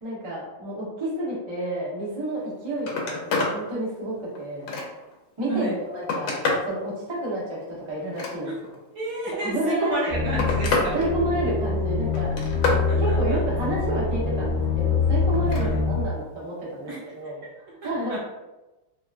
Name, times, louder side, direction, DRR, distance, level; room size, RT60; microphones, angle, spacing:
voice 1, 0.0-4.7 5.4-6.4 6.6-8.5 9.4-9.9 10.9-12.3 13.0-17.4 17.8-18.2, right 1 dB, 40° right, -6 dB, 0.4 m, -30 dB
Telephone, 2.3-2.5 2.8-3.6 4.1-5.1 5.7-6.7 8.0-8.8 9.8-10.9 11.3-11.7 12.1-12.9 15.3-15.7 17.1-17.2, left 3 dB, 80° left, 1.4 m, -28 dB
voice 2, 8.9-10.9 12.9-13.4 15.6-15.8 16.9-17.5 17.8-18.2, right 2 dB, 65° right, -5 dB, 1.0 m, -31 dB
sound 1, 10.1-16.0, left 4 dB, 50° left, 0.8 m, -25 dB
3.7 x 2.2 x 2.4 m, 1.0 s
omnidirectional pair, 2.2 m